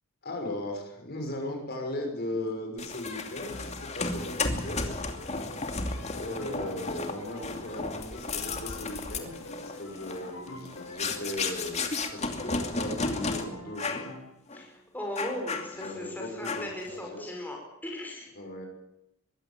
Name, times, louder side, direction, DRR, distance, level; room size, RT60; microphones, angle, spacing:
voice 1, 0.2-5.0 5.3-5.5 6.1-9.4 9.8-11.8 12.1-14.1 15.7-17.3 18.3-18.7, left 1 dB, 45° left, 3 dB, 6.2 m, -37 dB
sound 1, 2.8-13.4 13.8-14.1 14.5-14.6 15.2-16.0 16.4-16.9, left 3 dB, 30° left, 2.6 m, -34 dB
Piano, 3.4-11.5 11.8-14.2, left 2 dB, 70° left, 6.1 m, -47 dB
voice 2, 14.5-18.3, left 1 dB, 10° left, 0 dB, 5.4 m, -38 dB
23.0 x 16.0 x 9.0 m, 0.86 s
head